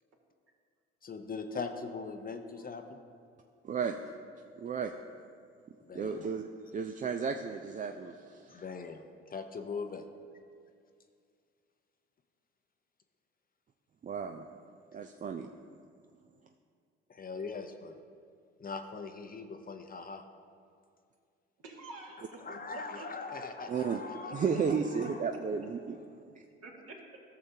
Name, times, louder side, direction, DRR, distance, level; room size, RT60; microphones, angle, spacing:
voice 1, 1.0-3.0 5.8-6.2 8.5-10.0 17.1-18.0 18.6-20.2 22.4-25.2, left 4 dB, 30° left, 6 dB, 0.7 m, -41 dB
voice 2, 3.6-4.0 4.6-4.9 5.9-8.5 14.0-14.5 14.9-15.5 23.7-24.0 24.3-26.0, right 6 dB, 25° right, 5 dB, 0.4 m, -33 dB
voice 3, 21.6-23.7 26.6-27.2, right 2 dB, 55° right, -1 dB, 1.9 m, -48 dB
14.0 x 6.6 x 2.8 m, 2.2 s
hypercardioid pair, 60°, 30 cm